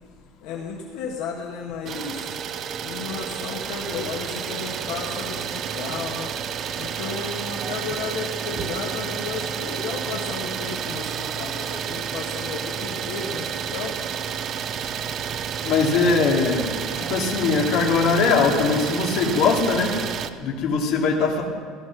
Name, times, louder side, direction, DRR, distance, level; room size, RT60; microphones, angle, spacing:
voice 1, 0.4-2.4 2.8-6.3 6.8-13.9, left 5 dB, 70° left, -1 dB, 2.0 m, -33 dB
Idling, 1.9-20.3, right 8 dB, 30° right, 0.6 m, -30 dB
voice 2, 15.6-16.7 17.0-20.0 20.4-21.4, left 4 dB, 50° left, -1 dB, 2.8 m, -21 dB
17.5 x 13.5 x 6.1 m, 2.1 s
cardioid pair, 170°, 0 cm